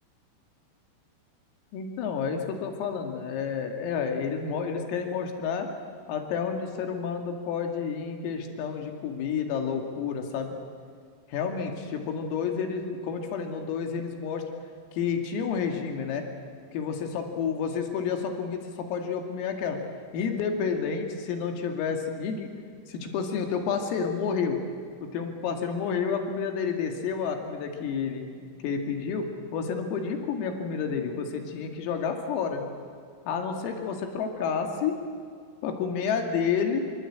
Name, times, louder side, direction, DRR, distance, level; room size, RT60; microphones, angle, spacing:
voice 1, 1.7-5.7 6.1-10.5 11.3-14.4 14.9-16.3 16.7-19.8 20.1-22.5 22.9-24.6 25.1-32.6 33.3-35.0 35.6-36.8, left 6 dB, 85° left, 4 dB, 5.1 m, -30 dB
27.0 x 24.0 x 8.7 m, 2.2 s
omnidirectional pair, 5.9 m